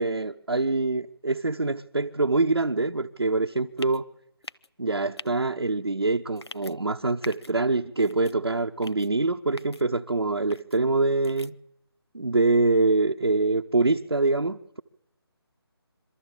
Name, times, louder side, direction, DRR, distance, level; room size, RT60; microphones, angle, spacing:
voice 1, 0.0-4.0 4.8-11.6 12.1-14.8, right 3 dB, 75° right, 3 dB, 0.8 m, -25 dB
sound 1, 3.8-4.0 4.4-4.7 5.2-5.3 6.4-6.7 7.2-7.5 8.0-8.3 8.8-9.1 9.6-9.8 10.5-10.8 11.2-11.5, left 2 dB, 80° left, 0.7 m, -42 dB
23.0 x 13.0 x 8.5 m, 0.86 s
figure-of-eight pair, 155°, 14 cm